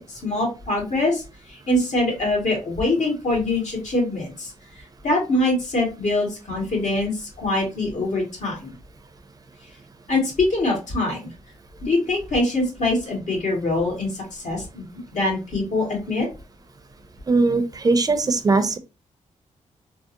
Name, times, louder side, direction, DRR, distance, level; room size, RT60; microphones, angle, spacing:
voice 1, 0.1-1.2 1.5-4.5 5.0-8.7 10.1-11.3 11.8-14.9 15.1-16.3, left 2 dB, 65° left, -2 dB, 1.8 m, -23 dB
voice 2, 17.3-18.8, right 3 dB, 30° right, 9 dB, 0.5 m, -20 dB
3.6 x 2.0 x 2.7 m, 0.29 s
cardioid pair, 75°, 13 cm